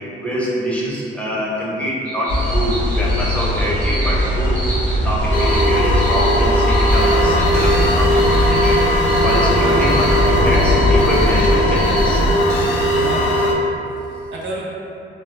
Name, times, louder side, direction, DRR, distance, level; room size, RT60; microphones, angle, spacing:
voice 1, 0.2-8.8 9.2-12.2, equal, 5° left, -7 dB, 0.5 m, -24 dB
sound 1, 2.0-8.7 11.2-12.6, equal, 45° right, 0.9 m, -38 dB
sound 2, 2.3-12.3, equal, 85° right, 0.9 m, -19 dB
sound 3, 5.3-13.5, equal, 65° left, 0.4 m, -18 dB
voice 2, 9.1-9.8 13.0-13.3 13.6-14.6, right 1 dB, 65° right, -5 dB, 0.6 m, -33 dB
2.2 x 2.0 x 2.9 m, 2.7 s
cardioid pair, 90°, 20 cm